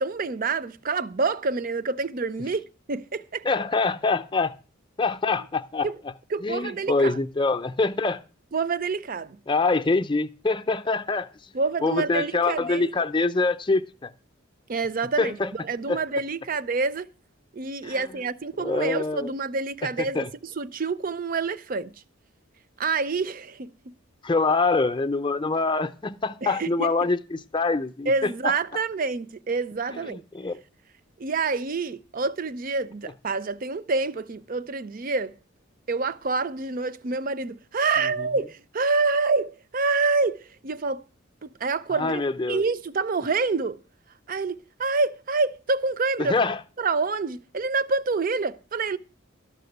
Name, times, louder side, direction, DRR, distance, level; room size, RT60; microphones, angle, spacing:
voice 1, 0.0-3.5 5.8-6.0 6.3-7.2 8.5-9.4 11.5-12.8 14.7-15.4 15.6-17.1 17.5-21.9 22.8-23.9 26.4-27.1 28.1-30.2 31.2-35.3 35.9-41.0 41.4-42.2 42.5-43.8 44.3-46.4 46.8-49.0, right 4 dB, 40° right, 0.5 m, -27 dB
voice 2, 3.4-4.5 5.0-5.9 6.4-8.2 9.5-11.3 11.8-14.1 15.2-15.5 15.9-16.0 17.8-18.0 18.6-19.3 20.0-20.3 24.2-28.5 29.9-30.6 38.2-38.3 41.9-42.6 46.2-46.6, left 3 dB, 25° left, 0.5 m, -25 dB
12.5 x 6.1 x 7.9 m
head